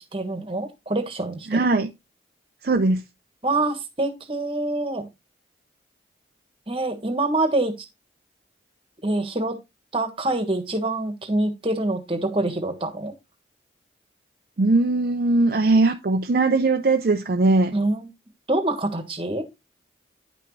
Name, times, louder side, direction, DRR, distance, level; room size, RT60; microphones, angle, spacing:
voice 1, 0.0-1.6 3.4-5.1 6.7-7.7 9.0-9.6 9.9-13.1 17.7-18.1 18.5-19.4, right 2 dB, 30° right, 1.3 m, -25 dB
voice 2, 1.5-1.9 2.6-3.0 14.6-17.7, right 3 dB, 50° right, 0.5 m, -20 dB
9.9 x 5.9 x 3.2 m
head